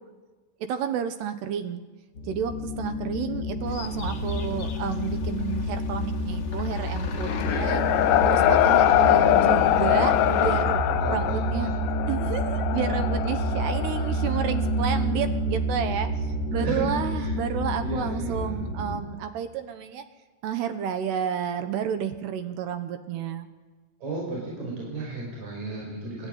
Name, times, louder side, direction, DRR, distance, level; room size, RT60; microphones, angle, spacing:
voice 1, 0.6-1.8 2.3-7.8 8.2-11.7 12.1-20.0 20.4-23.5, right 8 dB, 70° right, 9 dB, 2.7 m, -31 dB
sound 1, 2.2-19.0, equal, 40° left, 2.2 m, -29 dB
sound 2, 3.6-10.6, left 6 dB, 65° left, 1.5 m, -40 dB
sound 3, 6.8-14.7, left 12 dB, 85° left, 3.9 m, -23 dB
voice 2, 11.0-11.9 16.6-17.3 17.8-18.7 24.0-26.3, right 2 dB, 35° right, -3 dB, 6.4 m, -34 dB
29.5 x 13.0 x 9.4 m, 1.3 s
omnidirectional pair, 5.8 m